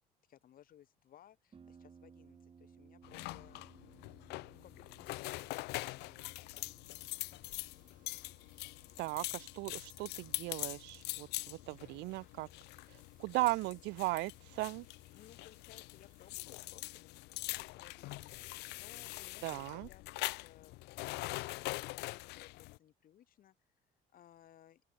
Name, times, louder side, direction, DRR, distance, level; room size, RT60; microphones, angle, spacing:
voice 1, 0.3-3.7 4.3-6.5 15.1-23.5 24.1-24.8, left 11 dB, 60° left, 2.7 m, -62 dB
Harp, 1.5-19.0, right 6 dB, 30° right, 1.8 m, -65 dB
sound 1, 3.0-22.8, left 21 dB, 80° left, 0.4 m, -44 dB
sound 2, 6.8-16.8, right 9 dB, 50° right, 4.9 m, -75 dB
voice 2, 9.0-12.5 12.9-14.9 19.4-19.9, right 23 dB, 90° right, 0.5 m, -37 dB
open air
cardioid pair, 110°, 17 cm